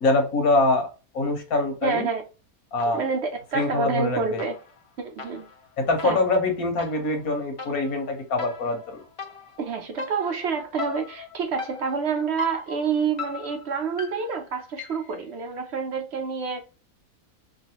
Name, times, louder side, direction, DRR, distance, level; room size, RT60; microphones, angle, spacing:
voice 1, 0.0-0.9 1.1-2.1 2.7-3.0 3.5-4.4 5.8-9.0, left 2 dB, 90° left, 1.5 m, -24 dB
voice 2, 1.8-2.2 2.9-4.6 5.0-5.5 6.0-6.2 9.6-16.6, right 5 dB, 65° right, 0.7 m, -28 dB
sound 1, 2.8-3.3 3.6-15.2, left 4 dB, 40° left, 0.4 m, -40 dB
3.2 x 2.3 x 2.8 m
omnidirectional pair, 1.5 m